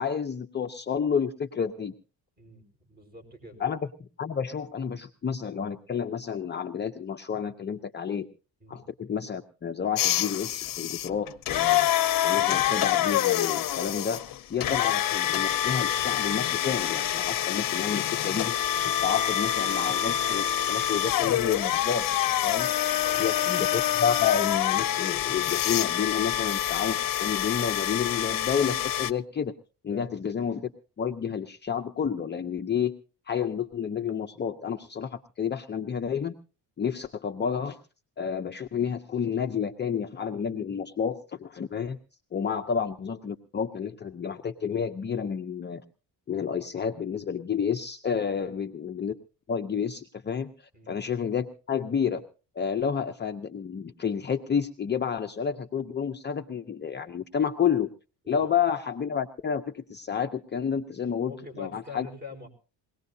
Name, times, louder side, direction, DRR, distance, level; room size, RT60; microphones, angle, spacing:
voice 1, 0.0-1.9 3.6-8.3 8.7-11.9 12.2-14.2 14.5-18.6 18.8-22.7 23.2-29.5 29.8-30.7 31.0-33.0 33.3-36.3 36.8-37.8 38.2-42.0 42.3-45.8 46.3-49.1 49.5-52.2 52.6-57.9 58.3-61.3 61.6-62.1, left 7 dB, 25° left, 5 dB, 0.6 m, -30 dB
voice 2, 2.4-3.6 8.6-8.9 23.0-23.5 29.9-30.2 42.4-42.6 48.3-48.6 50.7-51.0 58.2-58.5 61.2-62.5, left 4 dB, 25° right, 4 dB, 4.8 m, -45 dB
sound 1, 10.0-29.1, left 11 dB, 55° left, 0.8 m, -26 dB
Wind instrument woodwind instrument, 17.9-21.5, left 2 dB, 45° right, 5.9 m, -42 dB
22.0 x 18.5 x 2.7 m, 0.35 s
cardioid pair, 120°, 41 cm